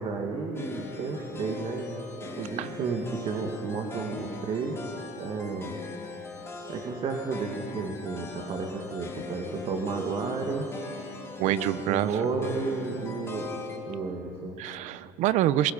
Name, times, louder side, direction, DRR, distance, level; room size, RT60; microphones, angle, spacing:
voice 1, 0.0-4.8 5.2-5.7 6.7-10.7 11.4-13.6 13.9-14.6, right 4 dB, 45° right, 2 dB, 2.0 m, -32 dB
sound 1, 0.6-13.8, left 3 dB, 20° left, 2.7 m, -41 dB
voice 2, 11.4-12.1 14.6-15.7, right 13 dB, 70° right, 16 dB, 0.7 m, -26 dB
22.5 x 21.0 x 5.6 m, 2.8 s
cardioid pair, 125°, 13 cm